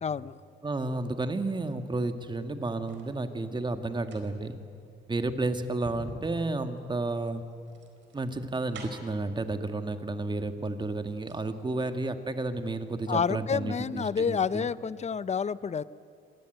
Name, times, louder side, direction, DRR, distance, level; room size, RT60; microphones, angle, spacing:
voice 1, 0.0-0.3 13.1-15.8, left 6 dB, 35° left, 17 dB, 0.7 m, -29 dB
voice 2, 0.6-4.6 5.1-7.4 8.1-14.7, right 2 dB, 25° right, 8 dB, 1.9 m, -32 dB
sound 1, 2.2-3.1 3.9-9.2 10.2-10.3 10.7-11.5 11.8-11.9, right 4 dB, 70° right, 4.4 m, -48 dB
25.5 x 19.5 x 9.2 m, 2.4 s
cardioid pair, 90°, 20 cm